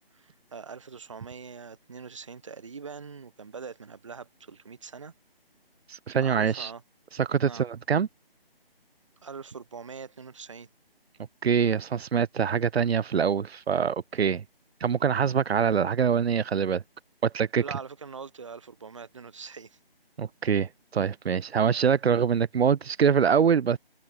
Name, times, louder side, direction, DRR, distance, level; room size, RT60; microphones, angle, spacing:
voice 1, 0.1-5.1 6.2-6.8 7.4-7.7 9.2-10.7 17.6-19.8, right 5 dB, 30° right, 0.9 m, -42 dB
voice 2, 5.9-6.7 7.2-8.1 11.4-14.4 14.8-16.8 17.2-17.6 20.2-23.8, right 7 dB, 90° right, 0.5 m, -24 dB
figure-of-eight pair, 165°, 30 cm